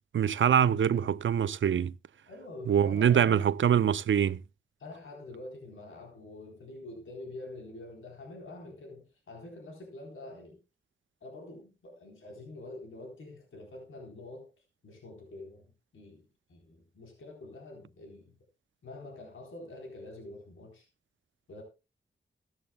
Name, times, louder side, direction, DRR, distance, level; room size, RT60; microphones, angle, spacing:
voice 1, 0.1-1.9 2.7-4.4, right 8 dB, 75° right, 0.6 m, -24 dB
voice 2, 2.3-3.5 4.8-10.6 11.2-18.4 18.8-20.9 21.5-21.6, left 2 dB, 85° left, 3.9 m, -46 dB
15.5 x 14.0 x 2.3 m
cardioid pair, 60°, 20 cm